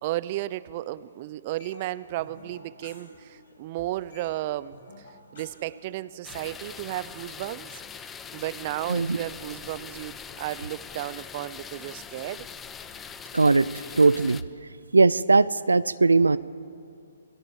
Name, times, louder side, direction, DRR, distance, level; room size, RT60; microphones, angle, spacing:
voice 1, 0.0-4.8 5.3-7.7 8.0-12.5, right 15 dB, 40° right, 18 dB, 0.6 m, -34 dB
sound 1, 1.6-3.5 3.8-6.6, left 3 dB, 65° left, 7.0 m, -51 dB
sound 2, 6.2-14.4, left 7 dB, 15° left, 0.7 m, -42 dB
voice 2, 13.3-13.7 14.0-14.4 14.9-16.4, right 3 dB, 90° right, 17 dB, 0.5 m, -19 dB
28.0 x 18.5 x 7.2 m, 2.5 s
hypercardioid pair, 140°, 0 cm